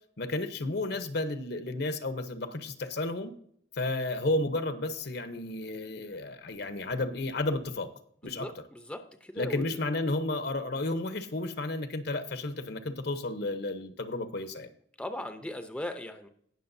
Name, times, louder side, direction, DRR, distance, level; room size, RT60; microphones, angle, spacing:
voice 1, 0.2-3.3 3.7-7.9 8.2-8.5 9.4-14.7, left 2 dB, 60° left, 10 dB, 0.9 m, -32 dB
voice 2, 8.3-9.8 15.0-16.3, left 1 dB, 5° left, 7 dB, 0.6 m, -39 dB
18.5 x 6.3 x 2.7 m, 0.65 s
head